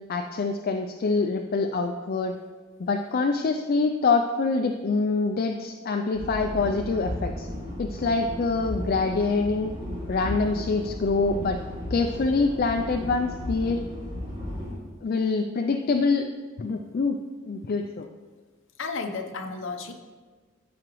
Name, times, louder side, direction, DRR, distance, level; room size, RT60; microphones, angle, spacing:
voice 1, 0.1-2.4 2.8-7.5 7.8-9.7 10.1-11.6 11.9-13.8 15.0-16.3 16.6-17.2 17.5-18.1, left 4 dB, 40° left, 4 dB, 0.3 m, -25 dB
sound 1, 6.1-14.7, left 1 dB, 25° right, 2.3 m, -35 dB
voice 2, 18.8-19.9, left 4 dB, 60° left, 5 dB, 0.7 m, -32 dB
13.5 x 5.0 x 3.1 m, 1.4 s
head